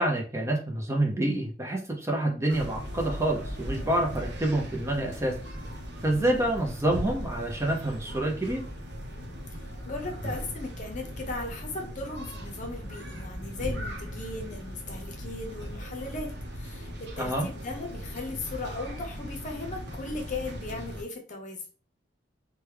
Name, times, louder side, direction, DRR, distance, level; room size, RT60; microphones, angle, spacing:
voice 1, 0.0-5.3 6.0-8.6 17.2-17.5, right 1 dB, 15° right, 1 dB, 0.6 m, -27 dB
sound 1, 2.5-21.0, equal, 60° right, 0.8 m, -38 dB
voice 2, 6.2-6.5 9.8-21.6, left 2 dB, 40° left, 3 dB, 0.8 m, -37 dB
3.0 x 2.3 x 3.2 m, 0.38 s
head